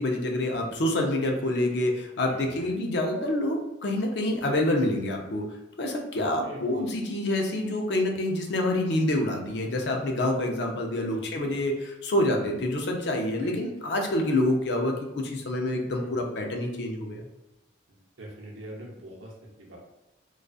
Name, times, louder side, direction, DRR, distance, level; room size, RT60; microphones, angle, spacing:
voice 1, 0.0-5.5 5.8-14.9 15.2-17.2, left 1 dB, 60° left, 2 dB, 0.4 m, -27 dB
voice 2, 2.2-2.7 6.1-6.8 11.1-11.2 13.4-13.5 15.8-16.2 18.2-19.8, right 1 dB, 90° right, -2 dB, 0.7 m, -44 dB
2.5 x 2.3 x 2.3 m, 0.98 s
head